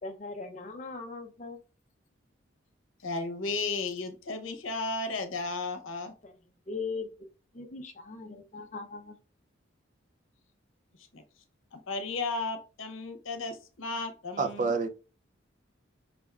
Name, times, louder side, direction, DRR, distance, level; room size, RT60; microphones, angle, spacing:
voice 1, 0.0-1.6 6.2-6.4 6.7-7.1 7.5-9.2, left 4 dB, 35° left, 0.5 m, -39 dB
voice 2, 3.0-6.1 11.1-11.2 11.7-14.7, left 3 dB, 80° left, 0.8 m, -34 dB
voice 3, 14.4-14.9, right 4 dB, 40° right, 0.5 m, -28 dB
5.1 x 3.4 x 2.4 m
head